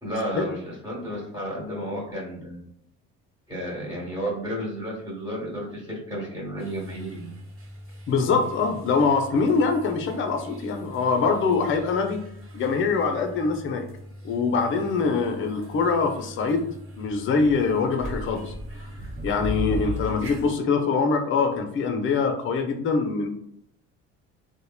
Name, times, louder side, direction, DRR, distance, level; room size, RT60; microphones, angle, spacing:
voice 1, 0.0-2.6 3.5-7.3, equal, 10° right, -6 dB, 1.3 m, -32 dB
sound 1, 6.6-20.5, equal, 40° right, 0.9 m, -38 dB
voice 2, 8.1-12.2 12.5-13.8 14.2-16.7 17.0-18.5 19.2-23.3, left 4 dB, 40° left, 5 dB, 0.5 m, -24 dB
2.9 x 2.1 x 2.2 m, 0.71 s
hypercardioid pair, 70°, 33 cm